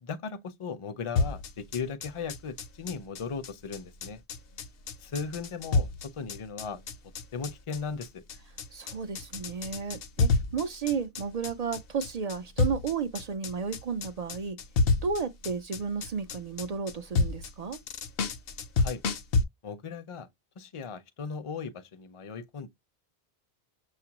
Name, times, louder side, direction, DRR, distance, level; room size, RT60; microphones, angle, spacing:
voice 1, 0.0-4.2 5.0-6.8 7.3-8.2 18.8-19.0 19.6-20.3 20.6-22.7, left 5 dB, 35° left, 0.6 m, -37 dB
sound 1, 1.2-19.4, left 4 dB, 65° left, 0.8 m, -29 dB
voice 2, 8.7-14.6 15.0-17.8, right 5 dB, 55° right, 0.4 m, -33 dB
6.6 x 2.4 x 2.9 m
omnidirectional pair, 1.1 m